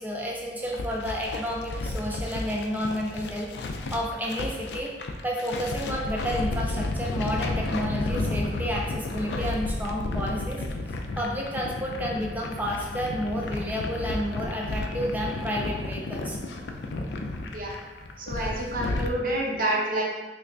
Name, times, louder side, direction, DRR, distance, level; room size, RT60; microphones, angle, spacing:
voice 1, 0.0-3.5 3.9-4.9 5.2-10.8 11.2-16.4 17.5-17.7 19.2-19.3, equal, 10° right, -2 dB, 0.4 m, -31 dB
sound 1, 0.6-19.1, left 2 dB, 65° left, 0.3 m, -32 dB
voice 2, 18.2-20.0, right 1 dB, 50° right, -2 dB, 0.7 m, -28 dB
3.3 x 3.2 x 2.5 m, 1.2 s
head